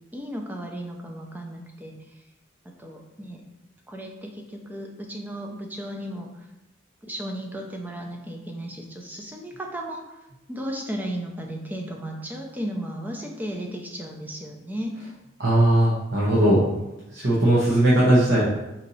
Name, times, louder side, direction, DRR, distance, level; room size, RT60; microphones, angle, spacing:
voice 1, 0.1-2.2 2.6-3.4 3.9-6.5 7.0-10.2 10.5-15.1, equal, 10° right, 1 dB, 0.4 m, -35 dB
voice 2, 15.4-16.7 17.1-18.4, right 1 dB, 55° right, -7 dB, 0.8 m, -19 dB
4.2 x 2.7 x 4.0 m, 0.97 s
head